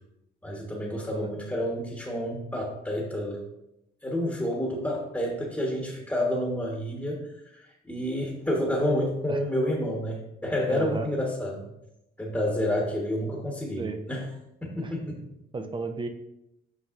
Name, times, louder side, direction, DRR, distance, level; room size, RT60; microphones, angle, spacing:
voice 1, 0.4-3.4 4.0-11.6 12.2-14.3 14.6-15.2, left 1 dB, 10° left, -1 dB, 1.3 m, -29 dB
voice 2, 10.7-11.1 13.8-14.0 14.8-14.9 15.5-16.1, right 3 dB, 25° right, 7 dB, 0.7 m, -33 dB
7.3 x 5.2 x 2.5 m, 0.86 s
cardioid pair, 90°, 20 cm